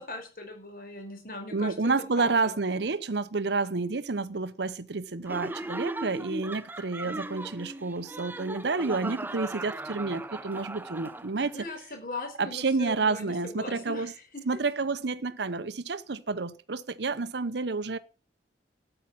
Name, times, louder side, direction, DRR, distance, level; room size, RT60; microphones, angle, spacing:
voice 1, 0.0-2.5 11.4-14.4, left 2 dB, 50° left, 5.4 m, -40 dB
voice 2, 1.5-11.6 12.4-14.1 14.5-18.0, right 3 dB, 70° right, 0.8 m, -29 dB
Laughter, 5.3-11.6, right 2 dB, 10° right, 0.6 m, -38 dB
13.0 x 8.9 x 6.0 m
head